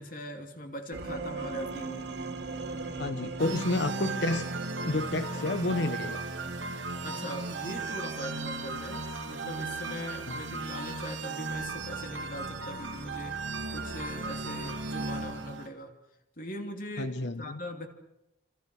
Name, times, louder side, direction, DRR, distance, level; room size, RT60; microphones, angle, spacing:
voice 1, 0.0-2.1 3.2-3.3 3.6-3.7 7.0-13.4 13.7-15.9 16.4-17.9, equal, 45° left, 4 dB, 2.9 m, -40 dB
sound 1, 0.9-7.9, right 2 dB, 60° right, 2.8 m, -39 dB
voice 2, 3.0-4.5 4.8-6.2 10.3-10.6 17.0-17.6, left 2 dB, 65° left, 10 dB, 1.0 m, -30 dB
sound 2, 3.4-15.7, right 3 dB, 80° right, 2.5 m, -36 dB
27.0 x 27.0 x 6.4 m, 0.89 s
head